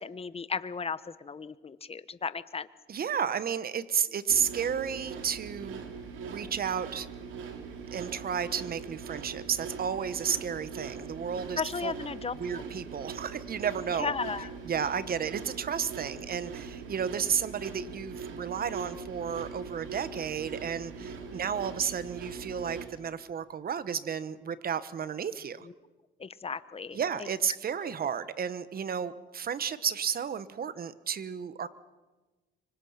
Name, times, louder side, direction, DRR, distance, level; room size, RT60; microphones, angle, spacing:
voice 1, 0.0-2.7 11.6-12.3 14.0-14.5 25.6-25.7 26.2-27.0, left 5 dB, 30° left, 15 dB, 1.0 m, -35 dB
voice 2, 2.9-5.8 6.2-7.1 7.9-11.9 12.4-14.1 14.6-25.7 26.9-31.7, right 7 dB, 50° right, 14 dB, 1.2 m, -32 dB
sound 1, 4.3-22.9, right 5 dB, 85° right, 2.8 m, -41 dB
25.0 x 25.0 x 5.9 m, 1.2 s
cardioid pair, 90°, 20 cm